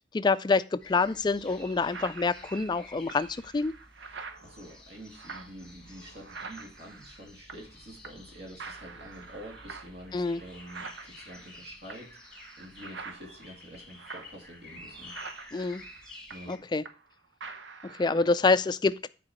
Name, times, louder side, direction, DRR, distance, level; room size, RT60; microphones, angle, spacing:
voice 1, 0.1-3.7 10.1-10.4 15.5-15.8 16.5-16.8 17.8-19.1, left 4 dB, 25° left, 15 dB, 0.3 m, -26 dB
sound 1, 0.8-16.6, left 1 dB, 5° left, 1.3 m, -51 dB
sound 2, 1.4-7.8 8.0-8.3 8.6-17.1 17.4-18.4, right 4 dB, 75° right, 0.9 m, -46 dB
voice 2, 4.1-15.1 16.3-16.6, equal, 60° right, 1 dB, 2.7 m, -47 dB
8.8 x 4.8 x 4.3 m, 0.36 s
head